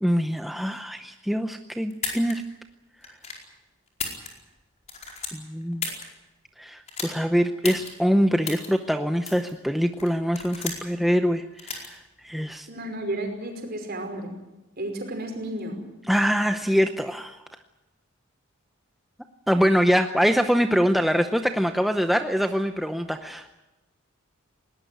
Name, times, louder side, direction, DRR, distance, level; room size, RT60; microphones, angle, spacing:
voice 1, 0.0-2.4 5.3-5.9 6.6-12.7 16.1-17.4 19.5-23.5, equal, ahead, 6 dB, 0.7 m, -24 dB
sound 1, 1.9-2.3 3.0-3.4 3.9-4.6 4.9-6.0 6.9-7.1 7.6-7.9 8.4-8.7 9.3-9.5 10.0-10.9 11.6-11.9, left 5 dB, 30° left, 4.7 m, -33 dB
voice 2, 12.7-14.4 14.8-15.8, right 1 dB, 45° right, 4 dB, 5.3 m, -32 dB
20.5 x 19.0 x 9.4 m, 1.0 s
head